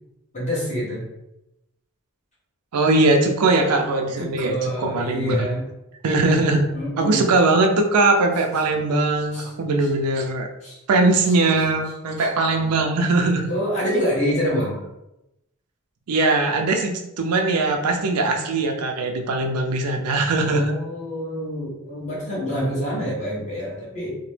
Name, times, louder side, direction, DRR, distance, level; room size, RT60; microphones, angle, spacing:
voice 1, 0.3-1.0 4.2-5.6 6.7-7.2 9.3-9.5 10.6-10.8 12.2-12.3 13.5-14.8 20.5-24.2, equal, 30° left, -6 dB, 1.1 m, -26 dB
voice 2, 2.7-5.5 6.0-6.6 7.0-10.5 10.9-13.5 16.1-20.7, right 2 dB, 90° right, 3 dB, 0.4 m, -20 dB
2.9 x 2.0 x 3.2 m, 0.90 s
head